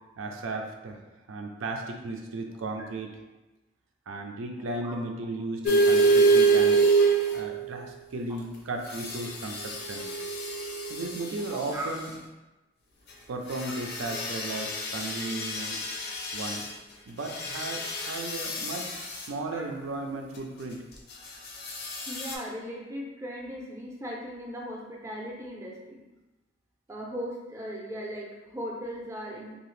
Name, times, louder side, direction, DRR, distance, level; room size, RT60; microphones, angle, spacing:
voice 1, 0.2-1.0 1.3-3.2 4.1-6.8 7.3-10.1 10.9-12.1 13.3-15.8 16.3-16.6 17.1-20.9, right 2 dB, 90° right, 3 dB, 0.4 m, -35 dB
sound 1, 5.7-7.8 8.9-11.4 13.5-16.7 17.3-19.2 21.6-22.3, right 3 dB, 55° left, 0.5 m, -26 dB
voice 2, 11.5-11.9 19.5-19.6 22.1-26.0 26.9-29.6, equal, 15° right, -2 dB, 0.5 m, -38 dB
2.8 x 2.4 x 3.1 m, 1.1 s
head